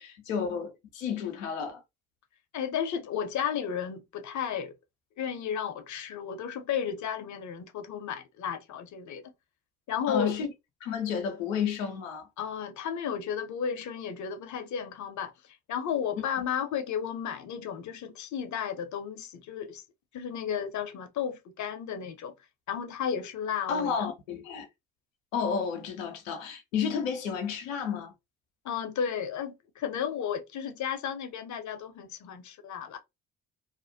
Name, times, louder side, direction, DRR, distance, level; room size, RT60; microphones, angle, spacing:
voice 1, 0.0-1.8 10.1-10.5 10.8-12.3 23.7-24.7 25.3-28.1, left 6 dB, 90° left, 0.6 m, -31 dB
voice 2, 2.5-4.8 5.2-9.3 9.9-10.4 12.4-15.3 15.7-19.8 20.1-22.3 22.7-24.1 28.6-33.0, left 8 dB, 50° left, 0.6 m, -33 dB
2.5 x 2.1 x 2.6 m
hypercardioid pair, 45°, 38 cm